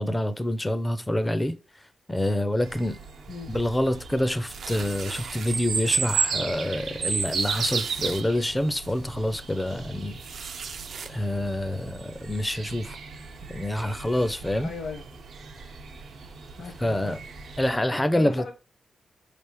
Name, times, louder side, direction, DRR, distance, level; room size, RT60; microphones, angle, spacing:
voice 1, 0.0-1.5 2.1-3.0 3.5-10.2 11.1-13.0 13.5-14.7 16.8-17.2 17.6-18.4, left 1 dB, 10° left, 0.4 m, -27 dB
sound 1, 2.6-17.7, right 5 dB, 80° right, 0.9 m, -34 dB
sound 2, 4.5-5.6 6.2-6.3 6.6-6.7 7.3-8.2 8.8-8.9 10.2-11.1, right 6 dB, 65° right, 0.5 m, -39 dB
voice 2, 14.6-15.0 16.6-17.2 18.1-18.5, left 5 dB, 75° left, 1.0 m, -37 dB
5.0 x 3.4 x 2.9 m
wide cardioid pair, 150°, 0 cm